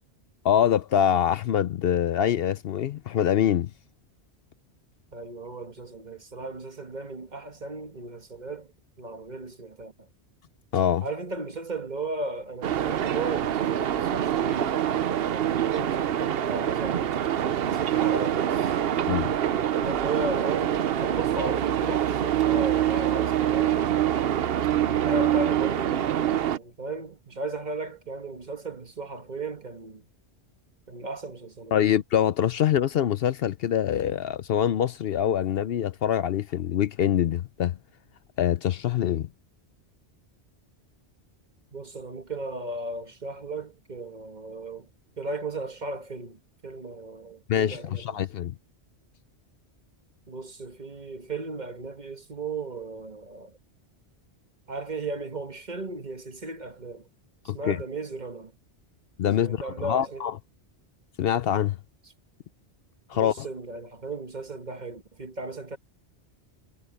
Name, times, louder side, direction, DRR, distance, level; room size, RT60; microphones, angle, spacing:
voice 1, 0.4-3.7 10.7-11.1 19.1-19.3 31.7-37.8 38.4-39.3 47.5-48.5 57.5-57.8 59.2-60.3 61.2-61.8 63.1-63.5, left 10 dB, 65° left, 0.8 m, -24 dB
voice 2, 5.1-8.7 9.0-10.1 11.0-14.8 15.3-17.2 17.7-18.8 19.8-23.9 24.8-30.0 30.9-31.8 41.7-44.9 45.2-48.2 50.3-53.6 54.7-57.1 57.4-58.5 59.4-60.3 63.1-65.8, right 3 dB, 40° right, 1.6 m, -36 dB
sound 1, 12.6-26.6, right 10 dB, 65° right, 0.9 m, -25 dB
omnidirectional pair, 1.1 m